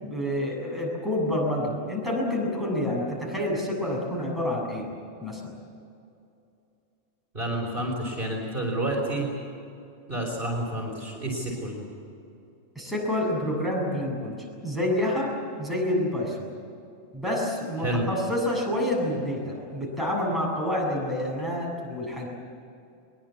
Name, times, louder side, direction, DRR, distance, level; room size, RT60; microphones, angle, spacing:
voice 1, 0.0-4.9 5.2-5.4 12.8-14.3 14.6-15.3 15.6-16.5 17.1-22.3, left 1 dB, ahead, -3 dB, 7.6 m, -28 dB
voice 2, 7.3-9.3 10.1-11.8 17.8-18.0, right 1 dB, 40° right, -1 dB, 5.3 m, -29 dB
23.0 x 22.5 x 8.6 m, 2.6 s
omnidirectional pair, 1.3 m